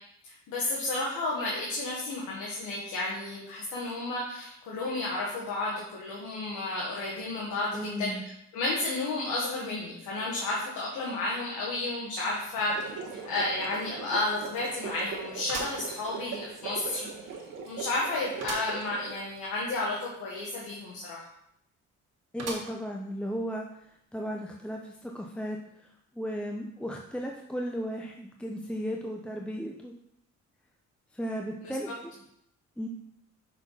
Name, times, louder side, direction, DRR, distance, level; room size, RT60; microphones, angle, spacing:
voice 1, 0.2-8.1 8.5-12.7 13.2-17.1 17.6-21.2 31.6-31.7, left 2 dB, 85° left, -4 dB, 1.5 m, -32 dB
voice 2, 7.7-8.2 22.3-23.7 24.1-25.6 26.2-29.9 31.1-32.2 32.8-32.9, equal, 5° left, 0 dB, 0.7 m, -35 dB
sound 1, 12.5-19.3, right 6 dB, 85° right, 1.4 m, -40 dB
sound 2, 13.2-13.3 13.8-13.9 15.5-16.6 17.1-17.2 18.4-18.8 19.2-19.3 19.5-19.6 22.4-23.0 23.6-23.7 24.7-24.8, right 3 dB, 55° right, 1.5 m, -39 dB
5.7 x 4.5 x 5.6 m, 0.76 s
cardioid pair, 90°, 30 cm